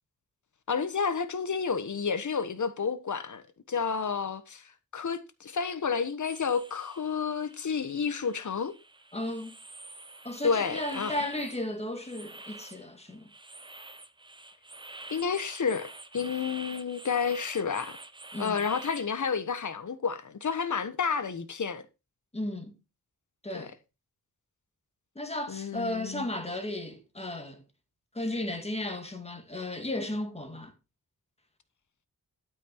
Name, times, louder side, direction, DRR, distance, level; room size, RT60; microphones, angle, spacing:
voice 1, 0.7-4.7 4.9-8.7 10.4-11.1 15.1-18.0 18.4-21.8 23.5-23.7 25.5-26.3, left 6 dB, 55° left, 1.3 m, -30 dB
sound 1, 6.2-19.1, right 2 dB, 15° right, 0.8 m, -47 dB
voice 2, 9.1-9.6 10.2-13.3 18.3-18.6 22.3-22.7 23.4-23.7 25.2-27.6 28.1-30.7, left 1 dB, 20° left, 2.0 m, -34 dB
12.0 x 6.0 x 4.5 m
wide cardioid pair, 140°, 35 cm